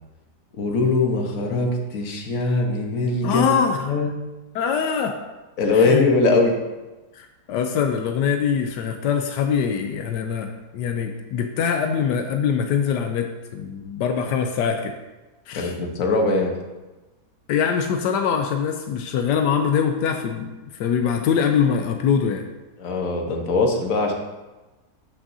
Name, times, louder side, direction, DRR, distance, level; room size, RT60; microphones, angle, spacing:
voice 1, 0.6-3.5 3.8-4.2 5.6-6.6 15.5-16.5 22.8-24.1, left 3 dB, 55° left, 2 dB, 1.5 m, -21 dB
voice 2, 3.2-3.9 4.5-5.2 5.7-6.1 7.1-15.0 15.5-15.7 17.5-22.5, left 7 dB, 85° left, 5 dB, 1.2 m, -23 dB
13.0 x 6.2 x 2.7 m, 1.1 s
omnidirectional pair, 1.8 m